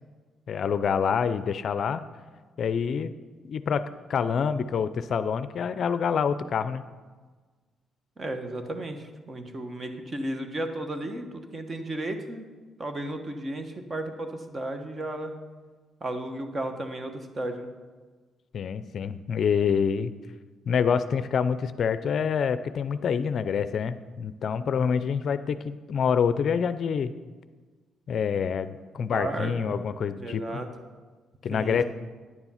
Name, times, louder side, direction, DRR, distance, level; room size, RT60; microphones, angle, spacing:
voice 1, 0.5-2.0 2.6-3.1 3.5-3.8 4.1-6.8 18.5-20.1 20.7-27.1 28.1-30.6 31.4-31.8, left 6 dB, 60° left, 13 dB, 0.4 m, -26 dB
voice 2, 8.2-12.5 12.8-15.3 16.0-17.7 29.0-29.8 30.1-30.7 31.5-31.8, right 1 dB, 30° right, 7 dB, 1.2 m, -34 dB
10.0 x 7.1 x 5.6 m, 1.4 s
cardioid pair, 90°, 0 cm